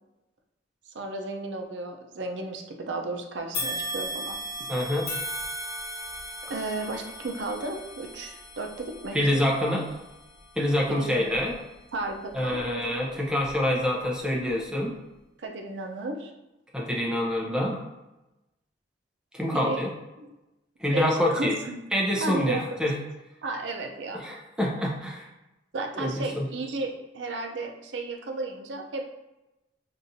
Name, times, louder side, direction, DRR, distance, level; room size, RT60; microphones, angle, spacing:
voice 1, 0.9-4.7 6.5-9.5 10.9-11.2 11.9-12.6 15.4-16.3 19.5-19.8 20.9-21.8 22.2-22.8 23.4-24.2 25.7-29.1, right 2 dB, 90° right, 3 dB, 0.5 m, -34 dB
sound 1, 3.5-12.9 13.4-13.5 14.5-14.6, equal, 40° left, 1.2 m, -38 dB
voice 2, 4.7-5.1 9.1-9.9 10.6-11.6 12.3-14.9 16.7-17.9 19.3-19.9 20.8-21.6 21.9-23.0 24.1-25.3 26.0-26.5, left 1 dB, 5° right, -3 dB, 0.6 m, -26 dB
5.5 x 2.5 x 2.6 m, 0.98 s
head